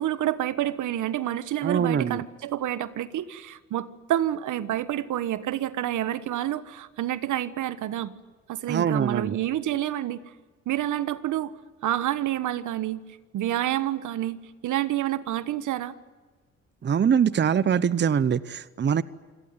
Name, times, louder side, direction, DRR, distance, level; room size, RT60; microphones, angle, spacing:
voice 1, 0.0-8.1 8.5-10.2 10.7-11.5 11.8-13.0 13.3-14.4 14.6-15.9, right 12 dB, 75° right, 15 dB, 1.3 m, -28 dB
voice 2, 1.6-2.2 8.7-9.4 16.8-19.0, right 7 dB, 35° right, 17 dB, 0.8 m, -23 dB
27.0 x 17.5 x 9.7 m, 1.4 s
cardioid pair, 90°, 30 cm